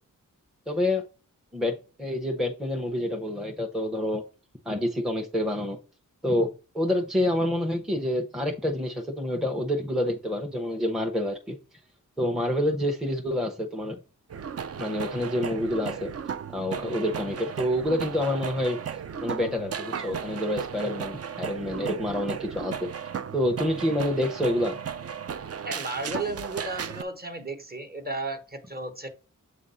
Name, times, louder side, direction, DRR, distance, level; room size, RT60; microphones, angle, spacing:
voice 1, 0.7-1.0 1.5-4.2 4.6-5.8 6.2-11.6 12.2-14.0 14.8-16.1 16.5-18.8 19.2-22.9 23.3-24.8, left 1 dB, ahead, 0.7 m, -27 dB
sound 1, 14.3-27.0, right 7 dB, 45° right, 0.4 m, -35 dB
voice 2, 25.6-29.1, right 2 dB, 30° right, 1.1 m, -34 dB
7.2 x 2.5 x 5.4 m
wide cardioid pair, 75°, 33 cm